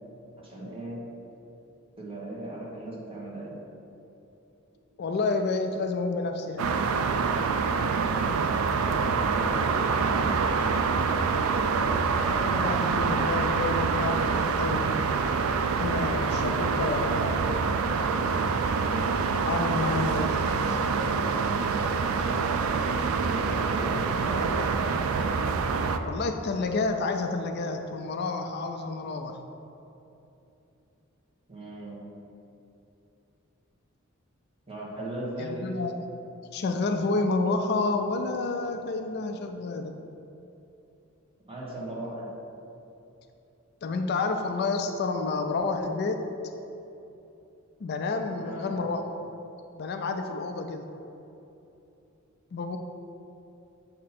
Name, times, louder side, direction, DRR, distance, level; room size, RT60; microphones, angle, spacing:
voice 1, 0.4-1.0 2.0-3.6 8.8-10.5 23.2-24.5 31.5-32.1 34.7-35.7 41.5-42.3 48.4-48.8, right 1 dB, 25° right, -5 dB, 1.4 m, -37 dB
voice 2, 5.0-6.7 12.2-14.9 15.3-17.4 19.4-20.3 20.7-20.8 26.0-29.4 35.4-35.9 36.5-40.0 43.8-46.3 47.8-49.0 49.7-50.9 52.5-52.8, left 3 dB, 50° left, 5 dB, 0.4 m, -29 dB
sound 1, 6.6-26.0, right 5 dB, 85° right, 0.4 m, -26 dB
7.3 x 2.9 x 5.9 m, 2.9 s
head